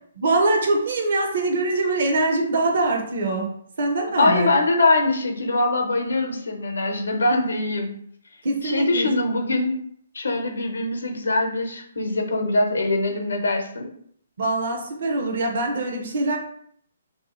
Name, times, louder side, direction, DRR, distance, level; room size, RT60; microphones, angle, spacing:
voice 1, 0.2-4.5 8.4-9.1 14.4-16.4, right 2 dB, 60° right, 2 dB, 0.7 m, -23 dB
voice 2, 4.2-7.9 8.6-9.7 10.1-13.9, left 2 dB, 85° left, 3 dB, 0.6 m, -22 dB
2.6 x 2.3 x 2.8 m, 0.65 s
hypercardioid pair, 145°, 0 cm